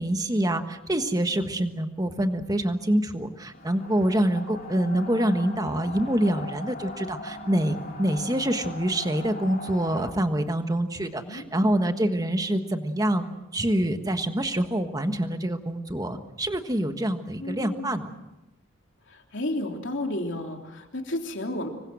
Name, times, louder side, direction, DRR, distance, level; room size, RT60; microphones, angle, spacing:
voice 1, 0.0-13.2 13.5-18.1, right 1 dB, 20° right, 7 dB, 1.4 m, -26 dB
sound 1, 3.5-10.1, left 2 dB, 45° left, 2.7 m, -40 dB
voice 2, 10.9-11.4 17.4-18.1 19.1-21.7, left 1 dB, 60° left, 3 dB, 3.3 m, -32 dB
26.5 x 23.5 x 6.3 m, 0.96 s
head